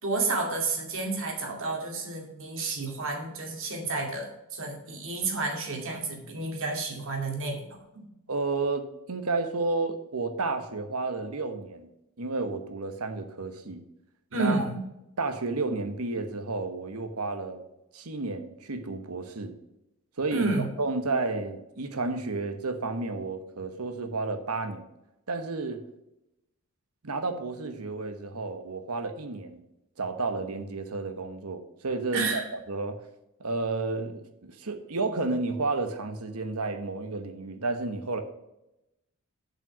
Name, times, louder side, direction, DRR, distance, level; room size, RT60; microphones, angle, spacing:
voice 1, 0.0-7.7 7.9-8.0 14.3-14.8 20.3-20.7 32.1-32.4, right 3 dB, 60° right, 2 dB, 2.4 m, -30 dB
voice 2, 8.3-11.9 12.2-13.8 14.3-14.7 15.2-17.6 17.9-19.5 20.2-20.5 20.8-24.9 25.3-25.8 27.0-29.6 30.0-32.4 32.7-33.0 33.4-38.2, right 3 dB, 80° right, 7 dB, 1.2 m, -31 dB
7.6 x 5.7 x 6.0 m, 0.89 s
head